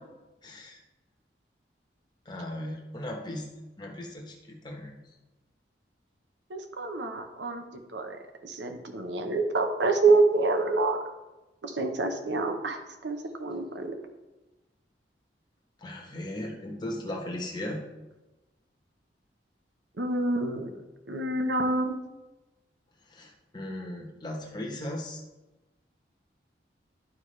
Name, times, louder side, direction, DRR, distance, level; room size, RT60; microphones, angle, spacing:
voice 1, 0.4-0.8 2.2-3.5 3.8-4.9 15.8-17.8 23.1-25.2, left 1 dB, 25° left, 0 dB, 1.1 m, -37 dB
voice 2, 6.5-8.2 8.4-11.0 11.6-13.9 20.0-20.8 21.1-22.0, right 3 dB, 80° right, 5 dB, 0.9 m, -27 dB
11.0 x 4.8 x 3.2 m, 1.1 s
head